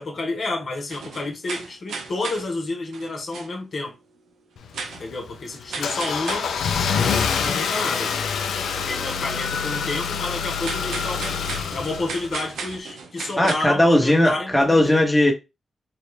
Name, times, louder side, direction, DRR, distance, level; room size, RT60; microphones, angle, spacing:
voice 1, 0.0-3.9 5.0-6.5 7.4-8.3 8.7-11.3 11.7-15.0, left 2 dB, 60° left, 1.0 m, -30 dB
sound 1, 0.9-2.5 2.9-3.5 4.7-5.1 5.7-6.5 9.8-10.0 10.6-13.5, right 4 dB, 90° right, 0.6 m, -35 dB
Car / Engine starting, 4.6-12.7, left 6 dB, 85° left, 0.5 m, -26 dB
voice 2, 13.4-15.3, left 1 dB, 5° left, 1.1 m, -18 dB
3.3 x 2.3 x 3.2 m
cardioid pair, 65°, 0 cm